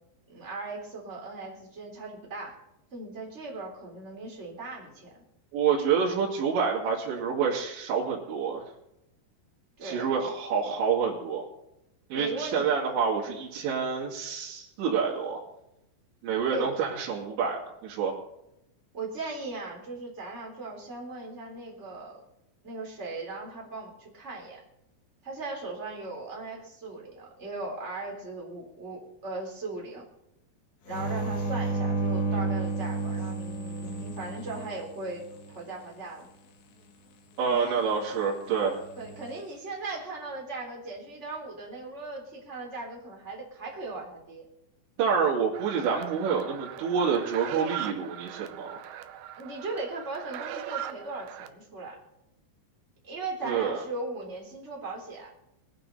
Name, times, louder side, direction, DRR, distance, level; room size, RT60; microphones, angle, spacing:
voice 1, 0.3-2.6 2.9-5.1 9.8-10.1 12.1-13.0 16.5-16.8 18.9-22.2 22.6-24.6 25.2-30.0 30.8-36.3 37.4-37.8 39.0-44.4 49.4-52.0 53.0-55.3, right 3 dB, 15° right, -2 dB, 3.4 m, -38 dB
voice 2, 5.5-8.6 9.8-11.4 12.1-15.4 16.2-18.1 37.4-38.8 45.0-48.8 53.4-53.8, right 6 dB, 70° right, -6 dB, 4.7 m, -27 dB
sound 1, 30.9-35.5 38.8-39.3, right 2 dB, 70° left, 3.9 m, -31 dB
sound 2, 45.5-51.5, right 11 dB, 85° right, 2.2 m, -40 dB
21.5 x 9.7 x 4.1 m, 0.85 s
omnidirectional pair, 5.5 m